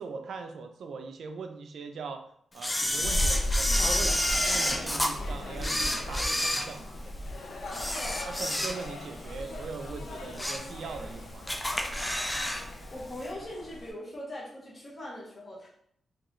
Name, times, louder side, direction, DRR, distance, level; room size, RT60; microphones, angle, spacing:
voice 1, 0.0-2.2 2.5-7.2 8.3-11.5, right 4 dB, 75° right, 6 dB, 0.4 m, -40 dB
Camera, 2.6-5.1 5.6-7.2 7.7-9.1 9.4-9.6 10.1-10.7 11.0-11.1 11.5-12.6 12.9-13.0, left 1 dB, 10° left, 0.4 m, -29 dB
sound 1, 2.7-13.9, left 1 dB, 80° left, 0.6 m, -36 dB
voice 2, 12.9-15.7, left 1 dB, 30° left, -5 dB, 0.9 m, -41 dB
3.6 x 2.8 x 3.1 m, 0.67 s
wide cardioid pair, 160°, 0 cm